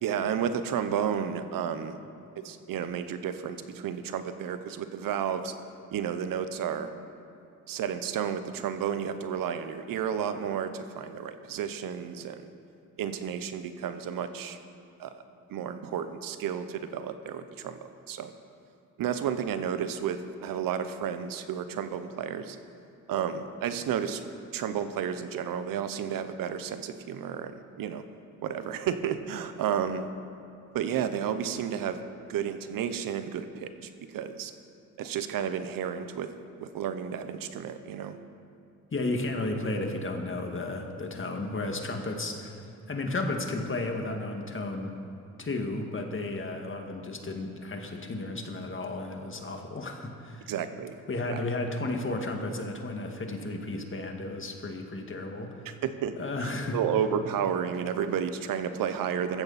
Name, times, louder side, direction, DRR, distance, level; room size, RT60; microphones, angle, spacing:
voice 1, 0.0-2.0 2.4-5.5 5.9-6.9 7.7-12.5 13.0-14.6 15.0-15.2 15.5-18.3 19.0-22.6 23.1-24.2 24.5-28.0 28.4-30.1 30.7-32.0 32.3-34.5 35.0-36.3 36.6-38.2 50.5-51.0 51.3-51.4 55.8-56.1 56.4-59.4, right 8 dB, 75° right, 10 dB, 0.9 m, -32 dB
voice 2, 38.9-44.9 45.4-50.5 51.1-55.7 56.2-56.8, left 2 dB, 35° left, 3 dB, 2.1 m, -33 dB
15.5 x 14.0 x 4.2 m, 2.6 s
supercardioid pair, 65°, 34 cm